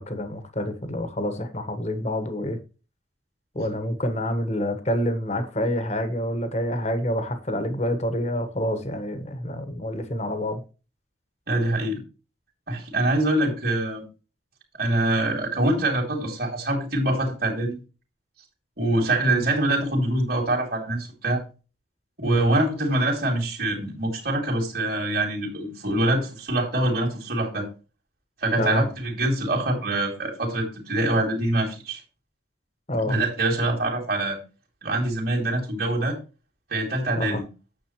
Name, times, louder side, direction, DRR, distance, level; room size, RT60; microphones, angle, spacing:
voice 1, 0.0-2.6 3.5-10.6 19.3-19.4 22.2-22.5 28.6-28.9 32.9-33.1 37.2-37.4, equal, 35° left, 1.4 m, -27 dB
voice 2, 11.5-12.0 12.7-14.0 14.8-17.8 18.8-21.4 22.2-27.7 28.4-32.0 33.0-34.4 34.8-36.2 36.7-37.4, right 1 dB, 55° right, 2.9 m, -24 dB
9.2 x 7.7 x 3.1 m
head